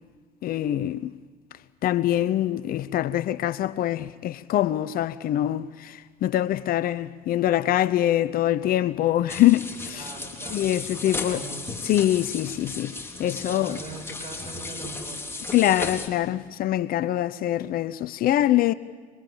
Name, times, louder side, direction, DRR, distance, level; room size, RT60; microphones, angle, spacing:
voice 1, 0.4-1.1 1.8-10.1 10.5-11.4 11.8-12.9 13.2-13.8 15.5-18.7, left 13 dB, 50° left, 0.8 m, -24 dB
sound 1, 9.3-16.1, left 3 dB, 10° left, 3.8 m, -35 dB
voice 2, 9.8-11.9 13.5-15.3, right 4 dB, 35° right, 6.5 m, -42 dB
26.5 x 24.0 x 7.2 m
hypercardioid pair, 75°, 20 cm